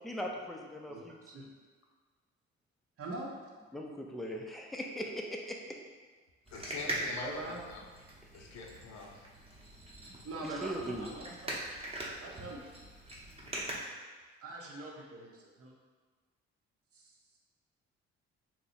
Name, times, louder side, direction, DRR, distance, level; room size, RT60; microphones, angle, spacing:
voice 1, 0.0-0.6 0.8-0.9 3.7-5.6 8.3-8.5 10.4-11.1, equal, ahead, 0 dB, 0.5 m, -39 dB
voice 2, 3.0-3.4 6.8-7.9 10.2-11.5 12.2-12.7 14.4-15.7 16.9-17.1, right 2 dB, 50° right, -1 dB, 0.8 m, -43 dB
voice 3, 6.5-7.8 8.3-9.3, left 4 dB, 65° left, 0 dB, 0.7 m, -44 dB
sound 1, 6.5-13.8, right 1 dB, 20° right, 0.9 m, -42 dB
2.9 x 2.3 x 4.2 m, 1.4 s
supercardioid pair, 60°, 30 cm